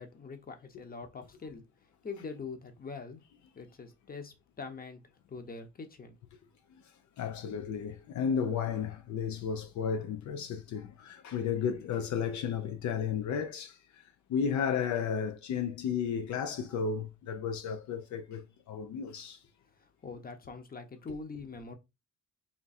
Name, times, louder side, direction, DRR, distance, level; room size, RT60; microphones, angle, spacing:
voice 1, 0.0-1.6 2.0-3.2 3.5-5.0 5.3-6.1 19.8-21.8, left 4 dB, 30° left, 1.0 m, -43 dB
voice 2, 7.2-19.4, left 7 dB, 70° left, 0.6 m, -33 dB
3.6 x 2.3 x 4.1 m
cardioid pair, 90°, 30 cm